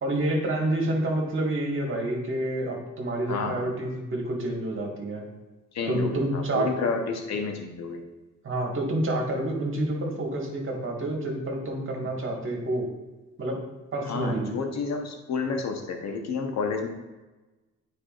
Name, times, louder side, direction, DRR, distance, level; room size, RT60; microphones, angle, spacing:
voice 1, 0.0-5.3 5.9-6.7 8.4-12.9 13.4-13.6 13.9-14.5, right 1 dB, 45° right, 1 dB, 1.7 m, -28 dB
voice 2, 3.3-3.7 5.7-8.0 12.0-12.1 14.1-16.9, left 4 dB, 60° left, 4 dB, 1.1 m, -30 dB
8.9 x 4.8 x 2.5 m, 1.1 s
cardioid pair, 90°, 30 cm